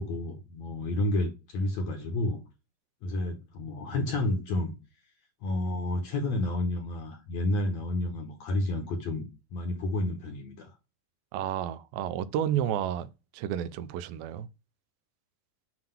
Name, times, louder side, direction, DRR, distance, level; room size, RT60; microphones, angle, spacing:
voice 1, 0.0-2.4 3.0-4.7 5.4-9.3 9.5-10.8, left 1 dB, 65° left, 1.8 m, -30 dB
voice 2, 11.3-14.5, right 10 dB, 85° right, 2.4 m, -31 dB
7.7 x 2.9 x 5.5 m
omnidirectional pair, 4.2 m